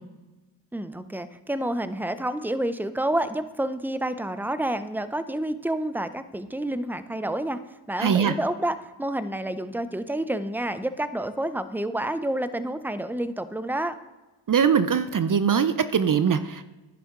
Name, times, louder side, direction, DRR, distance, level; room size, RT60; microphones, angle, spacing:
voice 1, 0.7-7.6 7.9-13.9, right 1 dB, 5° right, 12 dB, 0.6 m, -29 dB
voice 2, 8.0-8.3 14.5-16.6, right 7 dB, 45° right, 12 dB, 0.6 m, -22 dB
10.5 x 8.2 x 3.7 m, 1.2 s
cardioid pair, 45°, 47 cm